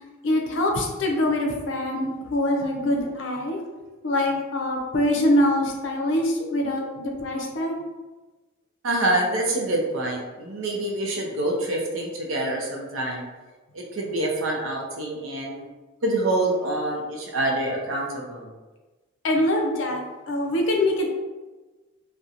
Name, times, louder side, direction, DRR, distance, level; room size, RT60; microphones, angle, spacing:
voice 1, 0.2-3.6 4.0-7.8 19.2-21.1, left 1 dB, 65° left, 1 dB, 0.5 m, -24 dB
voice 2, 8.8-13.2 13.7-15.6 16.0-18.5, right 1 dB, 85° right, -1 dB, 0.6 m, -26 dB
2.8 x 2.1 x 2.4 m, 1.2 s
head